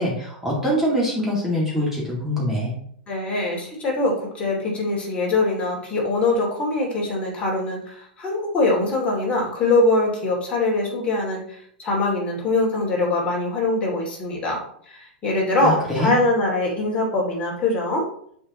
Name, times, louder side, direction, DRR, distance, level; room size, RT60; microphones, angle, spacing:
voice 1, 0.0-2.7 15.6-16.2, equal, 5° right, -5 dB, 2.1 m, -24 dB
voice 2, 3.1-14.6 14.9-18.0, left 2 dB, 25° left, -3 dB, 2.5 m, -23 dB
6.8 x 5.0 x 3.0 m, 0.65 s
hypercardioid pair, 105°, 5 cm